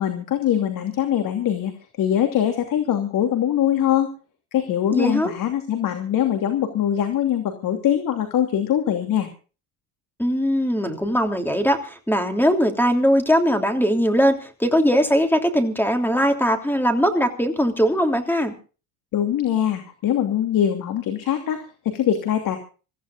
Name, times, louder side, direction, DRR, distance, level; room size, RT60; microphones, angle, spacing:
voice 1, 0.0-1.7 2.0-4.1 4.5-9.3 19.1-22.6, left 10 dB, 55° left, 6 dB, 2.9 m, -22 dB
voice 2, 4.9-5.3 10.2-18.5, equal, 5° left, 5 dB, 3.2 m, -20 dB
26.5 x 15.5 x 2.5 m, 0.35 s
supercardioid pair, 85°, 41 cm